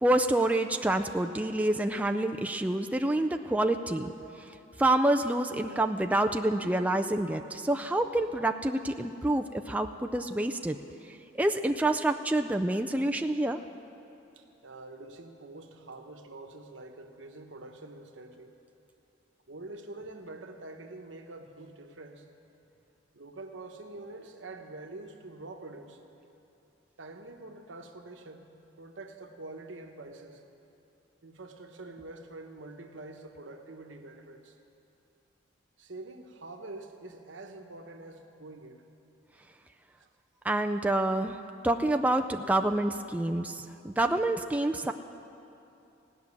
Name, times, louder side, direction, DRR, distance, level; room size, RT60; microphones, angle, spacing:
voice 1, 0.0-4.1 4.8-10.8 11.3-13.6 40.4-41.4 41.6-44.9, right 1 dB, 10° right, 5 dB, 0.4 m, -27 dB
voice 2, 14.4-18.6 19.5-22.3 23.1-26.0 27.0-28.5 28.8-30.4 31.2-34.6 35.8-38.8 40.0-40.1, right 2 dB, 85° right, 5 dB, 1.1 m, -46 dB
17.0 x 6.1 x 9.6 m, 2.8 s
head